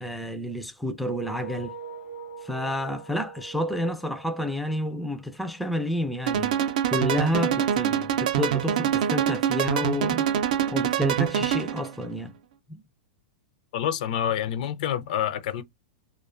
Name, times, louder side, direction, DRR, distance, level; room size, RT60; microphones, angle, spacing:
voice 1, 0.0-1.7 2.4-6.6 6.9-10.3 10.7-12.3 12.7-12.8, left 1 dB, ahead, 0.3 m, -29 dB
sound 1, 1.0-5.8, right 4 dB, 80° left, 1.0 m, -43 dB
sound 2, 6.3-11.9, right 9 dB, 70° right, 0.4 m, -25 dB
voice 2, 13.7-15.6, left 10 dB, 65° left, 0.4 m, -27 dB
2.4 x 2.2 x 2.3 m
hypercardioid pair, 135°, 5 cm